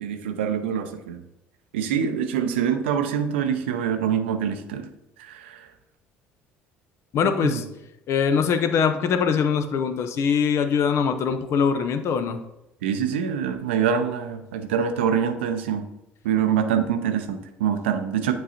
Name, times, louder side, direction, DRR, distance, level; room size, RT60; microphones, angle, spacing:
voice 1, 0.0-1.2 1.7-4.8 5.2-5.7 7.2-7.6 12.8-15.9 16.2-18.3, right 8 dB, 70° right, 8 dB, 0.5 m, -25 dB
voice 2, 7.1-7.6 8.1-12.4, left 6 dB, 45° left, 10 dB, 0.5 m, -22 dB
9.4 x 3.8 x 2.8 m, 0.89 s
figure-of-eight pair, 60°, 7 cm